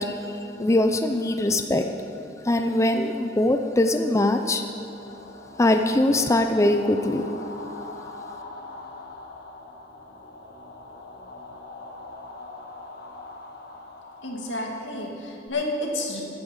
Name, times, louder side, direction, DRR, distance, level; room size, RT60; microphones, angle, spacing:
voice 1, 0.0-1.9 2.4-4.6 5.6-7.2, left 1 dB, 15° left, 5 dB, 0.5 m, -22 dB
sound 1, 4.4-15.5, left 2 dB, 55° left, 1.6 m, -42 dB
voice 2, 14.2-16.2, left 1 dB, 90° left, 0 dB, 2.3 m, -30 dB
14.5 x 8.8 x 7.2 m, 2.9 s
head